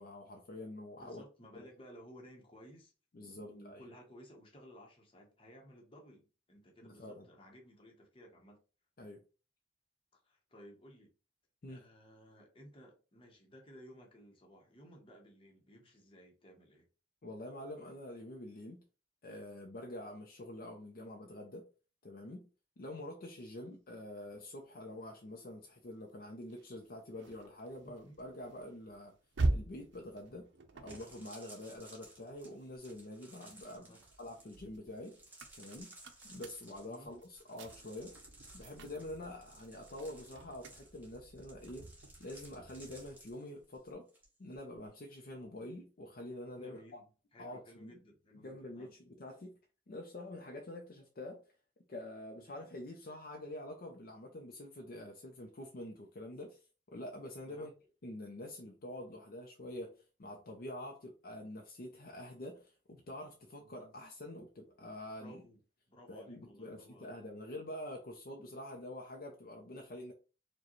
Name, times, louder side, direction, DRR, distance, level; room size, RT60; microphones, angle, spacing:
voice 1, 0.0-1.2 1.5-1.7 3.1-3.8 6.8-7.3 9.0-9.2 11.6-11.8 17.2-18.8 19.2-21.7 22.0-22.5 22.8-29.2 29.5-30.5 30.8-33.9 34.2-35.2 35.6-36.0 36.2-38.1 38.5-41.9 42.2-44.1 44.4-47.0 47.4-48.0 48.3-49.5 49.9-51.4 51.9-56.6 56.9-57.7 58.0-65.4 66.1-70.1, left 1 dB, 50° left, 0.5 m, -46 dB
voice 2, 0.9-2.9 3.2-8.6 10.1-11.1 11.7-16.9 27.8-28.2 33.7-34.0 36.8-37.1 46.6-48.9 57.4-57.7 63.6-63.9 65.2-65.6 65.9-67.2, equal, 30° left, 0.9 m, -57 dB
sound 1, 26.5-33.0 33.5-43.3, right 2 dB, 80° right, 0.5 m, -43 dB
sound 2, 30.7-44.3 44.5-44.9, right 2 dB, 10° right, 1.1 m, -58 dB
4.7 x 2.2 x 3.0 m
head